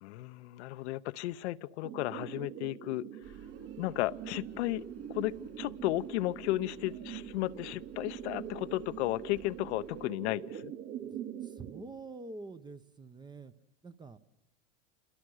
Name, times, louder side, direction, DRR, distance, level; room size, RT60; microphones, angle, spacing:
voice 1, 0.0-3.1 3.8-4.8 5.1-10.7, left 17 dB, 60° left, 13 dB, 0.8 m, -34 dB
sound 1, 1.8-11.8, right 9 dB, 55° right, 2.8 m, -44 dB
sound 2, 3.2-10.1, right 6 dB, 35° right, 4.4 m, -58 dB
voice 2, 11.0-13.5 13.8-14.2, right 3 dB, 10° right, 13 dB, 0.9 m, -47 dB
27.5 x 22.5 x 6.4 m, 0.90 s
hypercardioid pair, 120°, 38 cm